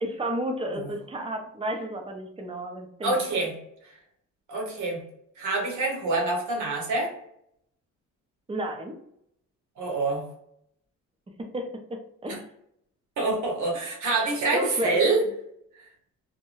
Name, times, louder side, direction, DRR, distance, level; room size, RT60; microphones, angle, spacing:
voice 1, 0.0-3.5 8.5-8.9 11.5-12.4 14.5-15.0, right 1 dB, 20° right, 3 dB, 0.6 m, -32 dB
voice 2, 3.0-3.5 4.5-5.0 5.4-7.1 9.8-10.2 12.3-12.4 13.2-15.2, right 3 dB, 75° right, -1 dB, 1.1 m, -26 dB
2.6 x 2.2 x 3.0 m, 0.73 s
cardioid pair, 90°, 30 cm